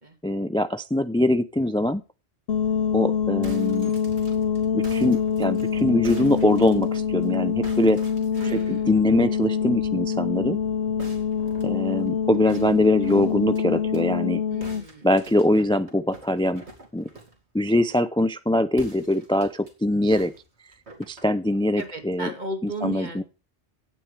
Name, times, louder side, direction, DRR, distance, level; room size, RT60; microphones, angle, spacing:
voice 1, 0.2-2.0 2.9-3.9 4.7-8.0 8.4-10.6 11.6-14.4 15.0-16.6 16.9-17.1 17.5-20.3 21.1-22.3 22.6-23.2, left 1 dB, 10° left, 12 dB, 0.3 m, -23 dB
sound 1, 2.5-14.8, left 7 dB, 70° left, 1.1 m, -25 dB
sound 2, 3.2-7.3 7.6-8.8 11.0-14.0 14.6-17.4 18.7-19.7 20.1-21.9, right 2 dB, 85° right, 3.0 m, -47 dB
voice 2, 8.3-8.9 14.5-15.1 15.5-15.6 21.8-23.2, right 2 dB, 45° right, 6 dB, 2.4 m, -35 dB
16.5 x 8.8 x 3.4 m, 0.33 s
omnidirectional pair, 1.1 m